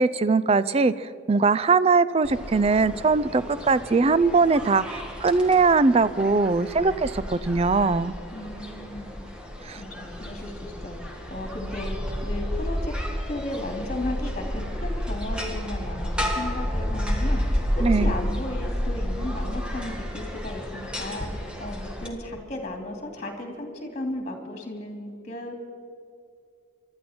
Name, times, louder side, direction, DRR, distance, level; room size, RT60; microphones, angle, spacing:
voice 1, 0.0-8.1 9.7-9.8 17.8-18.1, right 4 dB, 30° right, 16 dB, 0.4 m, -21 dB
sound 1, 2.2-22.1, equal, 5° right, 1.7 m, -31 dB
voice 2, 8.3-9.1 9.8-12.0 12.2-12.9 13.3-25.5, left 1 dB, 35° left, 3 dB, 2.7 m, -35 dB
24.5 x 12.5 x 4.4 m, 2.4 s
head